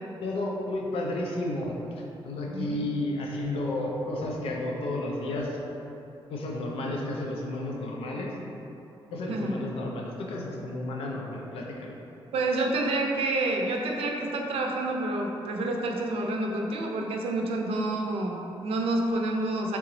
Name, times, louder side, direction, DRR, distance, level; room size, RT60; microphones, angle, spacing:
voice 1, 0.2-5.6 6.3-8.3 9.1-11.9, left 1 dB, 85° left, -1 dB, 0.6 m, -32 dB
voice 2, 2.4-2.8 9.3-9.5 12.3-19.8, right 2 dB, 90° right, 1 dB, 0.5 m, -28 dB
3.9 x 3.5 x 3.1 m, 2.9 s
wide cardioid pair, 165°, 10 cm